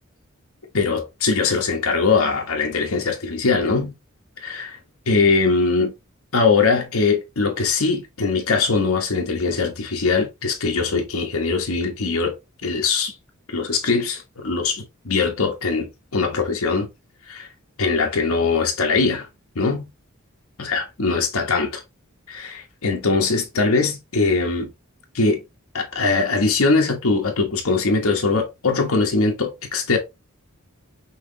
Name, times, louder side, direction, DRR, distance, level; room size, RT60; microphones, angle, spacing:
voice 1, 0.7-3.9 4.4-4.8 5.1-5.9 6.3-12.3 12.6-13.1 13.5-16.9 17.3-17.5 17.8-19.3 19.5-19.8 20.6-21.8 22.3-24.7 25.1-25.4 25.7-30.0, left 4 dB, 85° left, 1.1 m, -21 dB
5.7 x 3.0 x 2.7 m
head